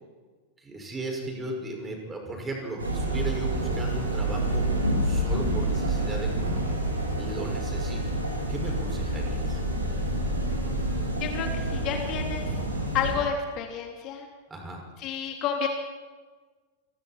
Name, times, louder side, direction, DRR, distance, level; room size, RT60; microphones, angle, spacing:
voice 1, 0.6-4.7 5.0-6.7 7.2-8.0 8.5-9.6 14.5-14.9, right 2 dB, 15° right, 2 dB, 6.1 m, -36 dB
sound 1, 2.8-13.1, right 1 dB, 75° right, 7.8 m, -28 dB
voice 2, 11.2-12.5 12.9-14.3 15.0-15.7, left 7 dB, 40° left, 2 dB, 3.1 m, -30 dB
28.5 x 22.5 x 4.5 m, 1.4 s
figure-of-eight pair, 90°, 0 cm